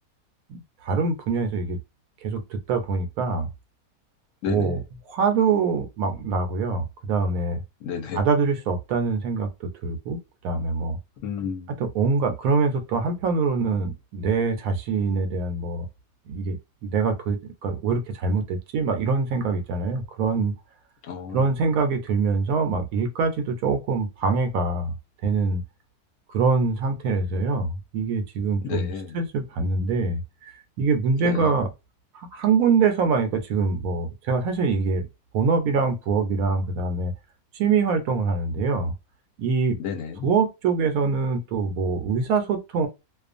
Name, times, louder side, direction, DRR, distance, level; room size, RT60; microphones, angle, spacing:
voice 1, 0.5-1.8 2.2-3.5 4.5-4.8 5.1-7.6 8.1-9.5 9.8-10.2 10.4-11.0 11.8-15.9 16.3-20.5 21.3-24.9 25.2-25.6 26.3-30.2 30.8-31.7 32.3-35.1 35.3-37.1 37.6-38.9 39.4-39.8 40.2-42.9, right 4 dB, 75° right, 1.0 m, -24 dB
voice 2, 7.8-8.2 11.2-11.7 21.1-21.4 28.6-29.2 31.2-31.5 39.8-40.3, left 6 dB, 65° left, 0.9 m, -31 dB
2.4 x 2.3 x 2.4 m
omnidirectional pair, 1.5 m